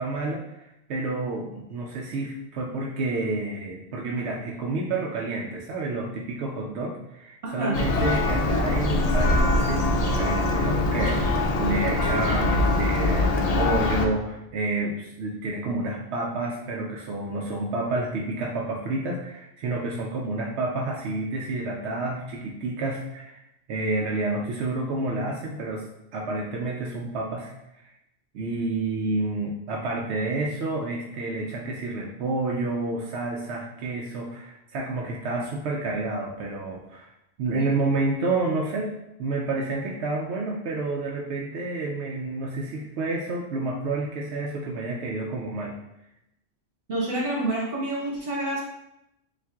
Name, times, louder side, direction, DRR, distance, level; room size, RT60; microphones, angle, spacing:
voice 1, 0.0-23.4 23.7-27.9 28.3-37.1 37.4-38.9 39.2-45.8, right 2 dB, 90° right, -1 dB, 0.9 m, -29 dB
voice 2, 7.4-7.8 37.5-37.7 46.9-48.6, right 1 dB, 60° right, -5 dB, 1.5 m, -28 dB
Church bell, 7.7-14.1, left 2 dB, 55° left, 0.4 m, -23 dB
7.0 x 2.5 x 2.3 m, 0.86 s
omnidirectional pair, 1.1 m